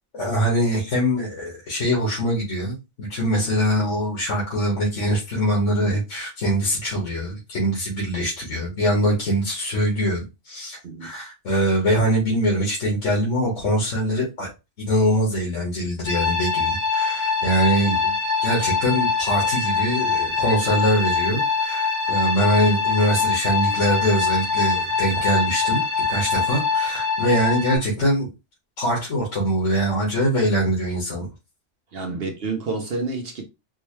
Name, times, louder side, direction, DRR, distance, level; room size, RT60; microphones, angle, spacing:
voice 1, 0.1-14.5 14.9-18.1 18.4-25.8 26.1-28.3 28.8-31.3 32.1-32.2, equal, 80° left, 1.8 m, -23 dB
sound 1, 16.1-27.8, left 4 dB, 35° left, 1.3 m, -23 dB
voice 2, 31.9-33.4, right 3 dB, 60° right, 0.8 m, -29 dB
4.5 x 2.2 x 3.0 m
omnidirectional pair, 1.2 m